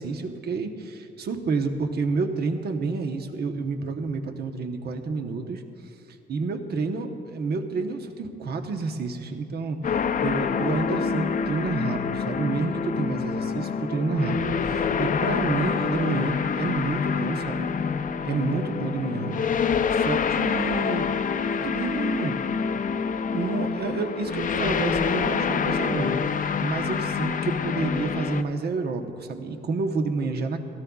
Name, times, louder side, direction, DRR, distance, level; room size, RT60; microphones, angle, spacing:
voice 1, 0.0-5.6 6.3-9.9 10.2-17.7 18.2-19.4 19.9-21.1 21.4-22.4 23.2-26.2 26.6-30.6, right 4 dB, 55° right, 5 dB, 1.0 m, -29 dB
sound 1, 9.8-28.4, left 6 dB, 45° left, 0.5 m, -26 dB
17.5 x 14.0 x 2.4 m, 2.5 s
cardioid pair, 90°, 20 cm